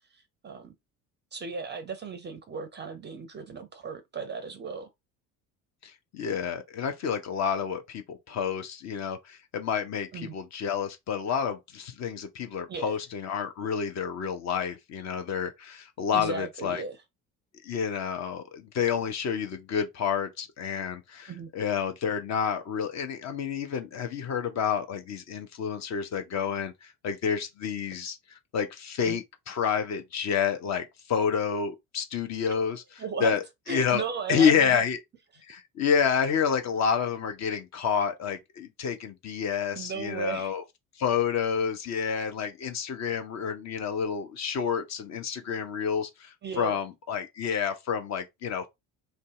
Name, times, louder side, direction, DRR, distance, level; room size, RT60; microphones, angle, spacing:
voice 1, 0.1-0.7 1.3-4.9 10.1-10.3 12.7-12.9 16.1-17.0 21.3-21.5 29.0-29.2 33.0-33.4 33.7-34.8 39.7-40.5 46.4-46.8, right 5 dB, 25° right, 0.5 m, -36 dB
voice 2, 5.8-16.8 17.6-28.2 28.5-32.8 33.2-33.4 33.7-34.0 34.3-35.0 35.5-40.6 41.0-48.7, left 7 dB, 35° left, 0.6 m, -29 dB
2.6 x 2.1 x 3.6 m
figure-of-eight pair, 60°, 47 cm